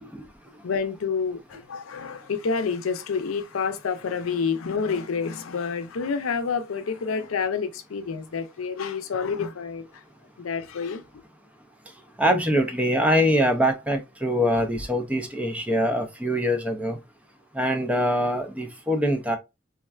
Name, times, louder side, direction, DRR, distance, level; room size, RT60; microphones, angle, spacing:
voice 1, 0.6-10.0 10.4-11.0, left 5 dB, 90° left, 0.5 m, -28 dB
voice 2, 12.2-17.0 17.6-19.4, equal, 5° right, 0.4 m, -23 dB
3.5 x 2.2 x 2.3 m
head